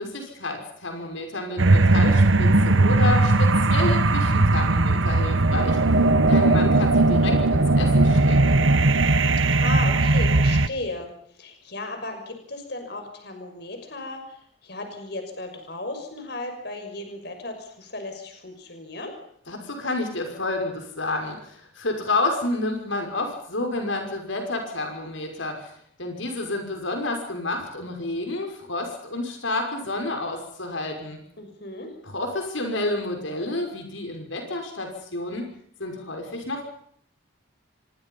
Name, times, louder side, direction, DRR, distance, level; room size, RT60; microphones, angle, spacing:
voice 1, 0.0-5.8 6.3-8.6 19.5-25.7 26.0-31.2 32.1-35.4 35.8-36.6, left 2 dB, 80° left, 4 dB, 5.9 m, -30 dB
sound 1, 1.6-10.7, right 2 dB, 85° right, 1.5 m, -18 dB
voice 2, 9.6-11.1 11.4-19.1 31.4-31.9, left 2 dB, 55° left, 5 dB, 6.2 m, -35 dB
27.0 x 24.5 x 5.6 m, 0.66 s
head